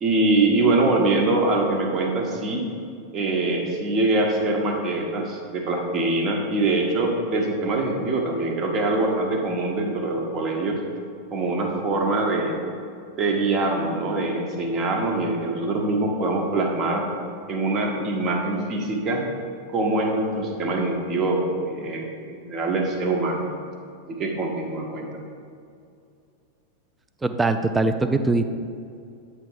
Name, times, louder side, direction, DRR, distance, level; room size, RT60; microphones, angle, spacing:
voice 1, 0.0-2.7 3.1-10.8 11.3-12.6 13.2-17.1 17.5-19.2 19.7-23.5 24.1-25.3, right 2 dB, 30° right, 1 dB, 1.1 m, -24 dB
voice 2, 27.2-28.4, right 3 dB, 10° right, 8 dB, 0.4 m, -21 dB
8.5 x 3.3 x 5.1 m, 2.4 s
figure-of-eight pair, 90°, 0 cm